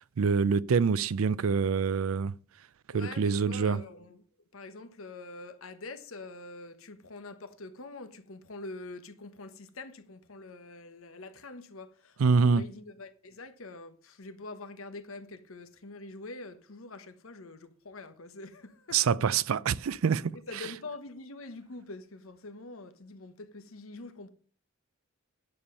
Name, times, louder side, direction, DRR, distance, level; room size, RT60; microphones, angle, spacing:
voice 1, 0.0-2.3 2.9-3.8 12.2-12.6 18.9-20.7, right 5 dB, 85° right, 0.4 m, -26 dB
voice 2, 2.9-4.2 4.5-19.0 20.5-24.3, left 2 dB, 85° left, 1.1 m, -45 dB
10.0 x 7.0 x 5.5 m
head